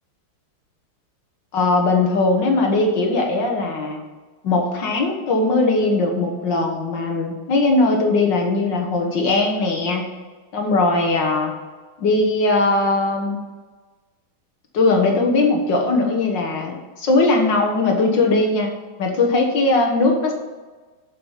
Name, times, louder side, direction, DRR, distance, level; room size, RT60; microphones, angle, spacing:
voice 1, 1.5-4.0 4.4-10.1 10.5-11.5 12.0-13.4 14.7-18.7 19.0-20.3, left 2 dB, 60° left, 2 dB, 1.9 m, -19 dB
7.5 x 7.4 x 5.7 m, 1.3 s
omnidirectional pair, 2.2 m